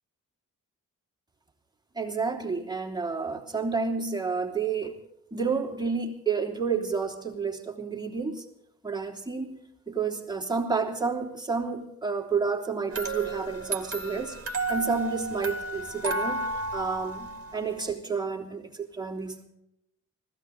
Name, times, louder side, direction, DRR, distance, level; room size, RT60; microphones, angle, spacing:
voice 1, 1.9-5.0 5.3-8.4 8.8-9.6 9.9-16.4 16.7-19.4, right 5 dB, 15° right, -2 dB, 3.2 m, -30 dB
sound 1, 12.9-17.9, right 2 dB, 45° right, 2.0 m, -33 dB
20.0 x 16.0 x 4.1 m, 0.84 s
cardioid pair, 70°, 33 cm